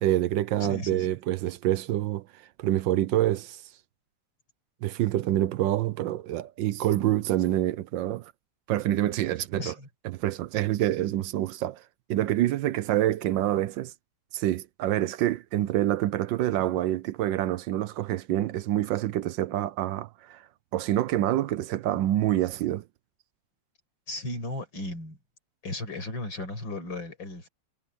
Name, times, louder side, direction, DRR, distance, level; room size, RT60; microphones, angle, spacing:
voice 1, 0.0-2.3 2.6-3.6 4.8-8.3 8.7-9.7 10.0-11.8 12.1-13.9 14.3-20.4 20.7-22.8, right 13 dB, 80° right, 1.4 m, -26 dB
voice 2, 0.6-1.2 9.6-9.9 24.1-25.2 25.6-27.5, left 1 dB, 85° left, 6.7 m, -35 dB
omnidirectional pair, 2.0 m